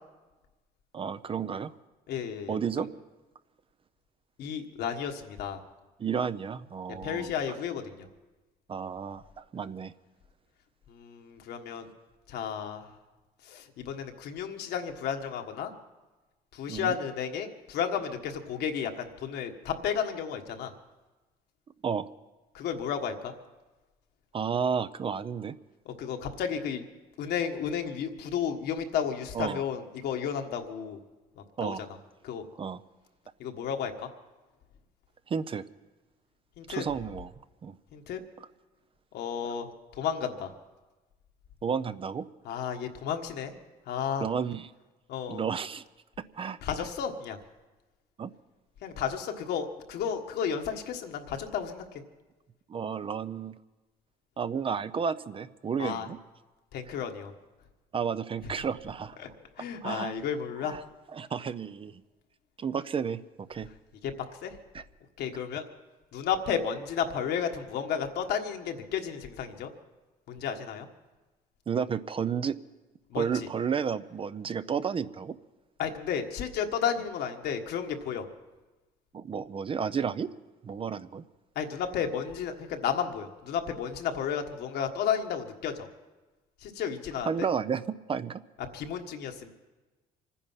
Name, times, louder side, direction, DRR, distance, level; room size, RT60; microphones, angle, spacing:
voice 1, 0.9-1.7 2.5-2.9 6.0-7.6 8.7-9.9 16.7-17.0 21.8-22.1 24.3-25.5 29.3-29.6 31.6-31.8 32.6-32.8 35.3-35.6 36.7-37.3 37.6-37.8 38.4-38.5 39.4-39.5 41.6-42.3 44.2-44.7 45.3-45.8 46.4-46.6 48.2-48.3 52.7-53.5 54.4-56.2 57.9-59.2 59.8-60.1 60.6-60.8 61.1-61.9 62.6-63.7 64.7-64.8 71.7-72.5 73.2-75.4 79.1-80.3 80.6-81.2 87.2-87.8 88.1-88.4, right 6 dB, 30° right, 14 dB, 0.5 m, -32 dB
voice 2, 2.1-2.6 4.4-5.6 7.0-8.1 10.9-11.9 12.3-12.9 13.5-15.7 16.5-20.7 22.5-23.3 25.8-26.8 27.2-31.0 31.6-31.7 32.2-32.4 33.4-34.1 36.6-36.8 37.9-38.2 39.1-39.7 40.0-40.5 42.4-43.5 43.9-44.3 45.1-45.4 46.6-47.4 48.8-52.0 55.8-56.1 56.7-57.3 59.2-59.3 59.6-60.8 64.0-64.1 64.4-64.5 65.2-65.6 66.1-69.7 70.3-70.9 73.1-73.5 75.8-78.2 81.5-85.9 86.6-87.5 88.7-89.5, left 7 dB, 75° left, 4 dB, 1.5 m, -32 dB
25.0 x 10.0 x 5.7 m, 1.2 s
cardioid pair, 110°, 17 cm